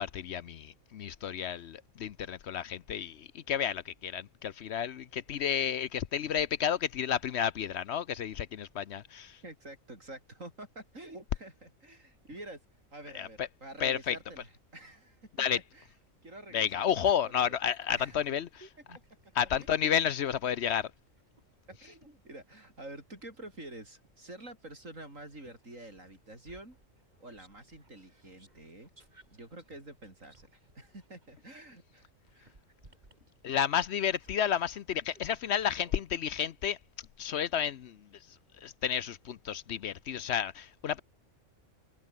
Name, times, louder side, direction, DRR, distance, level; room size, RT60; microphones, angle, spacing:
voice 1, 0.0-9.4 13.1-13.5 13.8-14.2 15.4-15.6 16.5-18.7 19.3-20.9 33.4-36.8 37.2-38.0 38.6-41.0, left 9 dB, 65° left, 0.9 m, -31 dB
voice 2, 9.4-12.6 12.9-15.9 16.2-17.2 17.5-17.6 17.9-18.3 19.6-19.7 21.8-26.8 27.2-32.5, right 1 dB, 85° right, 8.1 m, -48 dB
sound 1, 16.9-19.9 20.5-24.8 25.3-36.0, right 2 dB, 35° right, 3.5 m, -60 dB
omnidirectional pair, 1.3 m